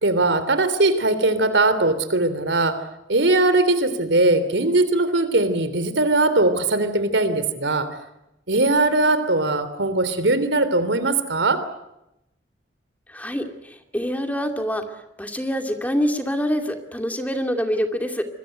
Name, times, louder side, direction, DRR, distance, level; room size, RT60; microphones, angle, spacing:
voice 1, 0.0-8.0 8.5-11.7, right 2 dB, 80° right, 12 dB, 3.2 m, -20 dB
voice 2, 13.1-14.8 15.2-18.2, equal, 10° left, 5 dB, 2.5 m, -25 dB
26.5 x 22.0 x 8.0 m, 0.86 s
head